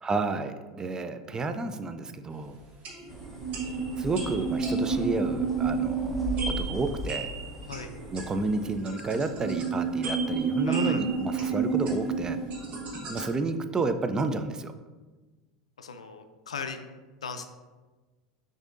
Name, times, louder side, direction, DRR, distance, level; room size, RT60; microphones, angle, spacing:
voice 1, 0.0-2.6 4.0-7.3 8.1-12.4 13.1-14.7, right 3 dB, 20° right, 8 dB, 0.3 m, -31 dB
sound 1, 2.7-13.4, right 3 dB, 45° right, 1.1 m, -40 dB
sound 2, 3.0-13.2, right 5 dB, 75° right, 0.9 m, -30 dB
sound 3, 3.1-8.8, equal, 5° left, 0.7 m, -39 dB
voice 2, 10.6-11.1 15.8-16.8 17.2-17.5, left 5 dB, 90° left, 8 dB, 0.4 m, -38 dB
6.3 x 2.6 x 2.5 m, 1.3 s
hypercardioid pair, 90°, 3 cm